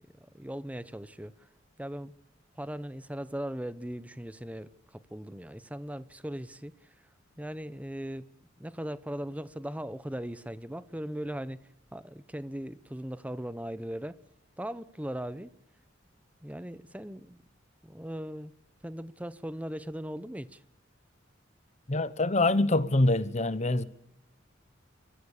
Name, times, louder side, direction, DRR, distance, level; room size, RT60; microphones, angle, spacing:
voice 1, 0.3-1.5 1.8-2.1 2.6-6.7 7.4-8.3 8.6-14.2 14.6-15.5 16.4-17.4 17.8-18.5 18.8-20.6, equal, 5° right, 0.8 m, -38 dB
voice 2, 21.9-23.8, left 2 dB, 35° left, 1.0 m, -25 dB
29.5 x 15.0 x 7.2 m
head